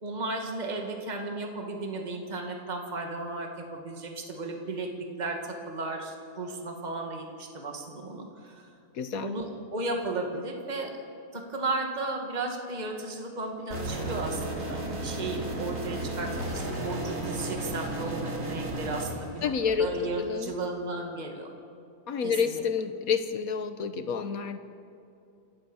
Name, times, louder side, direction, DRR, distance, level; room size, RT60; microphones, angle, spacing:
voice 1, 0.0-4.9 5.2-8.7 9.2-10.9 11.3-19.5 19.8-21.5 22.2-22.6, right 2 dB, 25° right, 2 dB, 2.0 m, -34 dB
voice 2, 8.9-9.3 19.4-20.5 22.1-24.6, left 6 dB, 55° left, 10 dB, 1.4 m, -29 dB
sound 1, 13.7-19.0, right 1 dB, 45° right, 3.4 m, -33 dB
sound 2, 14.6-20.1, equal, 20° left, 3.9 m, -47 dB
27.5 x 14.5 x 7.1 m, 2.6 s
omnidirectional pair, 1.9 m